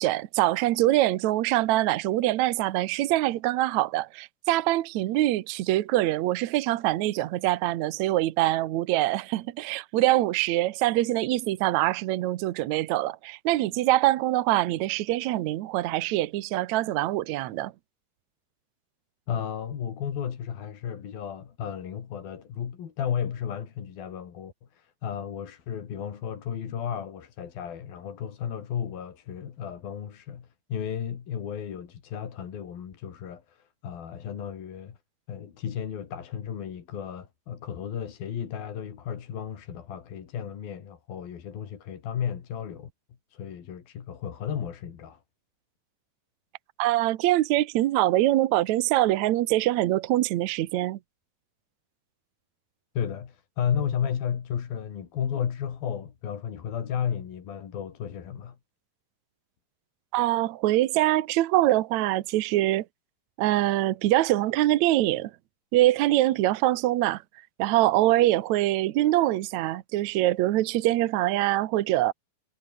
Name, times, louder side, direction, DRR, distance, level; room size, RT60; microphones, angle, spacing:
voice 1, 0.0-17.7 46.8-51.0 60.1-62.9 63.4-65.3 65.7-67.2 67.6-72.1, right 15 dB, 70° right, 1.9 m, -24 dB
voice 2, 19.3-35.0 35.3-42.9 43.3-45.2 53.0-58.6, left 8 dB, 80° left, 4.6 m, -33 dB
omnidirectional pair, 4.1 m